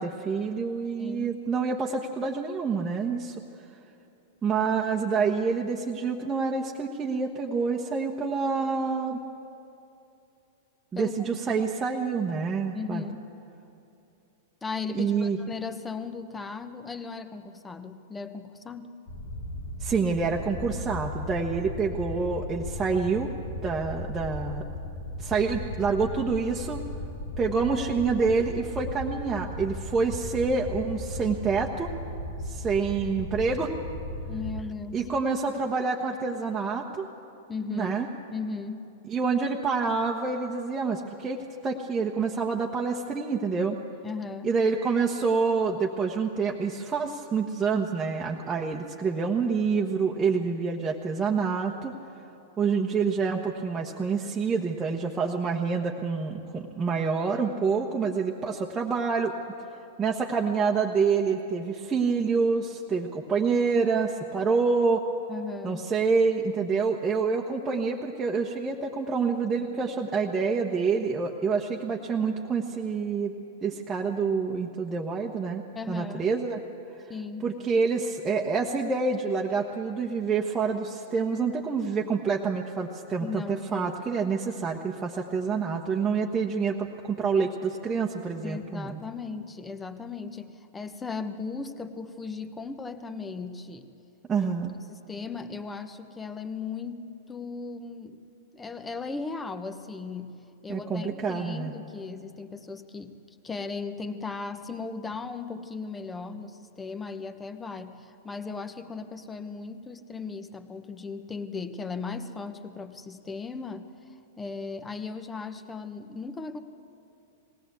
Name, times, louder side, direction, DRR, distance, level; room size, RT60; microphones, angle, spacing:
voice 1, 0.0-3.3 4.4-9.2 10.9-13.0 14.9-15.4 19.8-23.3 23.6-24.6 25.2-26.8 27.4-31.9 32.4-33.7 34.9-37.1 37.7-38.1 39.0-43.8 44.4-51.9 52.6-59.3 60.0-65.0 65.6-73.3 73.6-76.6 76.9-77.0 77.4-89.0 94.3-94.8 100.7-101.7, right 5 dB, 20° right, -2 dB, 1.3 m, -27 dB
voice 2, 1.0-1.3 10.9-11.6 12.7-13.3 14.6-18.9 34.3-35.1 37.5-37.9 38.3-38.9 44.0-44.5 65.3-65.8 75.7-76.3 77.1-77.6 83.2-83.9 88.4-93.9 94.9-98.2 98.5-103.2 103.4-116.6, left 4 dB, 15° left, 10 dB, 1.2 m, -37 dB
sound 1, 19.1-34.6, left 1 dB, 55° left, 1.9 m, -36 dB
20.0 x 17.5 x 8.2 m, 2.7 s
figure-of-eight pair, 100°, 0 cm